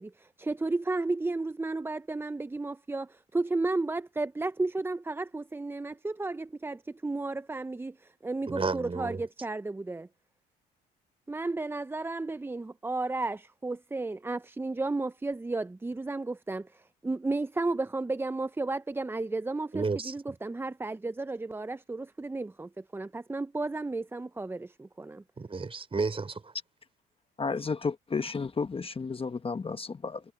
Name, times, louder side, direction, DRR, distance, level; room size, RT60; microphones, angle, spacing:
voice 1, 0.0-10.1 11.3-16.6 17.0-25.2, right 3 dB, 10° right, 0.5 m, -33 dB
voice 2, 8.5-9.2 19.7-20.1 25.4-26.5, right 4 dB, 25° right, 4.4 m, -32 dB
voice 3, 27.4-30.2, left 4 dB, 25° left, 1.2 m, -32 dB
supercardioid pair, 75°, 20 cm